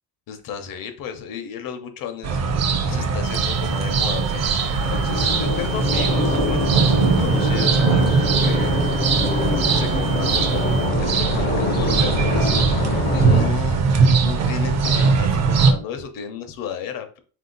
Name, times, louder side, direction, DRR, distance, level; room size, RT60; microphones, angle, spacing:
voice 1, 0.3-2.4 2.8-4.5 4.9-6.7 7.2-8.8 9.7-17.2, left 7 dB, 60° left, 7 dB, 0.8 m, -33 dB
sound 1, 2.2-15.7, right 5 dB, 45° right, 0.5 m, -20 dB
sound 2, 3.2-10.9, right 6 dB, 80° right, 1.0 m, -37 dB
sound 3, 4.8-13.5, left 2 dB, 25° left, 0.4 m, -25 dB
4.0 x 2.7 x 3.9 m, 0.39 s
cardioid pair, 180°, 38 cm